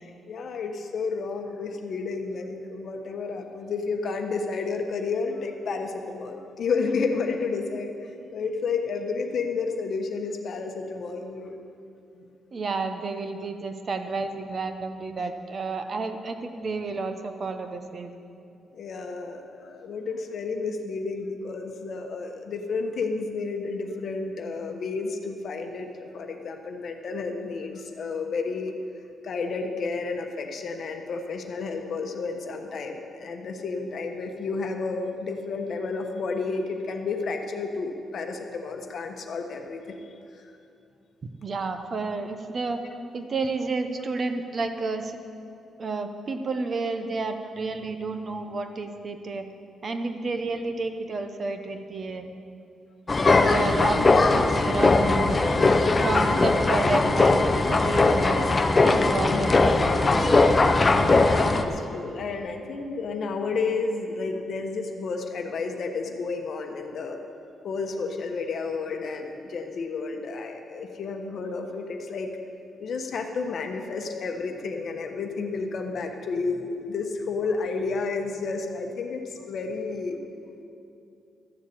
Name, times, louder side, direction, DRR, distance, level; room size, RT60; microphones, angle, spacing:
voice 1, 0.3-11.5 12.1-12.2 18.7-28.8 29.2-40.1 42.8-42.9 59.3-59.5 61.0-67.2 67.6-72.4 72.8-80.2, left 4 dB, 50° left, 4 dB, 1.2 m, -31 dB
voice 2, 12.5-18.1 41.4-42.8 43.1-45.2 45.8-49.5 49.8-52.2 53.5-55.4 56.0-58.5 58.8-60.5, right 3 dB, 35° right, 7 dB, 0.8 m, -31 dB
sound 1, 53.1-61.6, left 3 dB, 20° left, 0.6 m, -20 dB
13.5 x 7.3 x 8.7 m, 2.6 s
cardioid pair, 160°, 0 cm